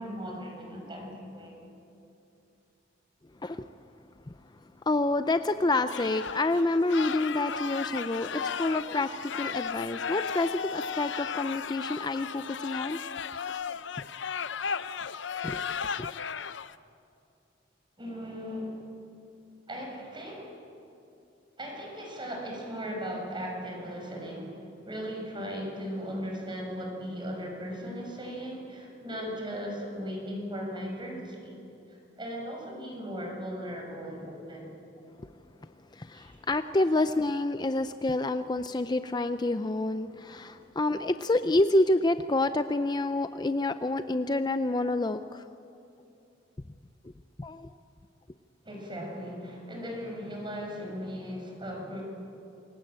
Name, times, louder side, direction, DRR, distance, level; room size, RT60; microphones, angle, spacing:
voice 1, 0.0-1.6 18.0-18.8 19.7-20.6 21.6-31.6 31.9-34.7 36.1-36.4 48.6-52.0, equal, 25° right, 0 dB, 5.9 m, -37 dB
voice 2, 4.9-13.0 15.4-15.6 16.0-16.1 35.9-45.4 47.4-47.7, left 2 dB, 20° left, 10 dB, 0.5 m, -28 dB
sound 1, 5.9-16.8, left 6 dB, 70° left, 0.7 m, -35 dB
27.5 x 22.5 x 8.8 m, 2.7 s
head